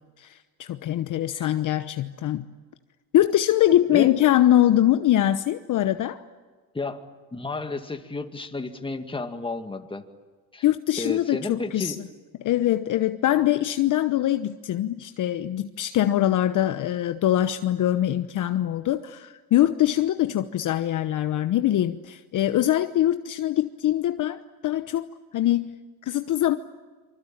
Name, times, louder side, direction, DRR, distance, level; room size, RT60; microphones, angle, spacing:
voice 1, 0.2-2.5 3.1-6.2 10.6-11.9 12.4-25.1 25.3-25.7 26.1-26.6, left 12 dB, 40° left, 10 dB, 1.0 m, -23 dB
voice 2, 7.3-10.0 10.5-10.6 11.0-12.0, left 3 dB, 10° left, 7 dB, 2.1 m, -32 dB
26.5 x 25.0 x 8.9 m, 1.4 s
supercardioid pair, 105°, 47 cm